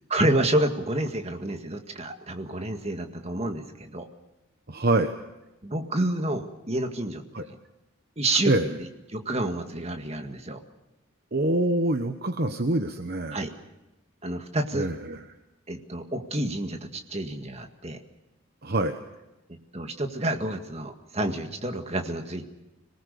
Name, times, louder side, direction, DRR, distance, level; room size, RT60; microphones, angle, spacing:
voice 1, 0.1-4.1 5.6-7.2 8.2-8.8 9.1-10.6 13.3-13.5 14.2-14.9 15.7-18.0 19.7-22.4, right 1 dB, 30° right, 5 dB, 1.9 m, -29 dB
voice 2, 4.7-5.1 7.3-7.5 8.4-8.7 11.3-13.4 14.7-15.2 18.6-18.9, right 1 dB, 50° right, 7 dB, 1.0 m, -25 dB
26.0 x 19.0 x 6.8 m, 0.98 s
head